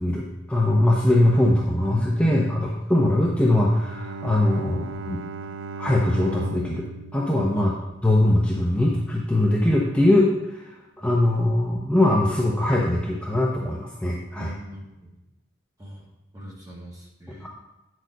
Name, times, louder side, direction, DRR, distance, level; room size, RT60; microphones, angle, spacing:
voice 1, 0.0-5.2 5.8-6.8 7.1-7.7 8.0-10.6 11.0-14.5 17.4-17.5, left 1 dB, 5° left, -4 dB, 0.8 m, -21 dB
voice 2, 2.2-2.8 7.5-7.9 14.3-15.1 15.8-16.1 16.3-17.5, right 1 dB, 20° right, -3 dB, 1.8 m, -41 dB
Bowed string instrument, 3.4-8.6, right 4 dB, 75° right, 0.4 m, -38 dB
8.8 x 6.5 x 3.9 m, 1.0 s
head